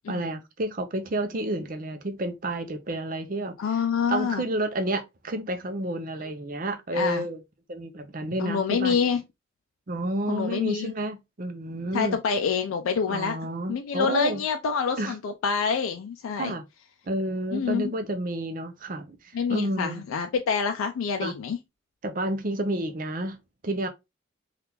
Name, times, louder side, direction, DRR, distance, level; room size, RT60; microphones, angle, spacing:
voice 1, 0.1-3.8 4.1-7.4 7.7-9.0 9.9-12.2 13.1-14.4 15.0-15.2 16.4-16.6 17.1-19.2 19.5-20.0 21.2-21.4 22.0-23.4 23.6-23.9, right 1 dB, 45° right, 0.5 m, -30 dB
voice 2, 3.6-4.4 6.9-7.3 8.4-9.2 10.3-10.9 11.9-13.4 13.7-16.6 17.5-17.9 19.3-21.6, left 6 dB, 85° left, 0.4 m, -27 dB
3.5 x 2.4 x 2.8 m
head